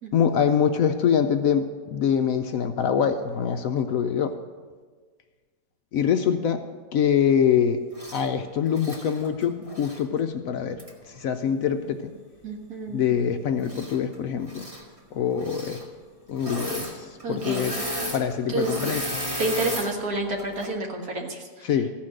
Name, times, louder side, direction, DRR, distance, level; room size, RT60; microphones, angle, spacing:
voice 1, 0.1-4.3 5.9-6.6 6.9-7.8 8.1-10.8 11.1-12.1 12.9-14.6 15.1-15.8 16.3-17.8 18.1-19.0 21.6-21.9, left 8 dB, 70° left, 7 dB, 0.9 m, -24 dB
Engine / Mechanisms, 7.9-8.3 8.7-10.0 10.8-10.9 13.6-14.2 14.4-14.8 15.4-15.8 16.4-16.9 17.2-19.9 20.4-20.7, equal, 20° right, 1.9 m, -33 dB
voice 2, 12.4-13.0 17.2-17.7 18.5-18.8 19.4-21.5, right 2 dB, 65° right, 1 dB, 2.0 m, -29 dB
15.0 x 5.8 x 7.6 m, 1.5 s
omnidirectional pair, 1.8 m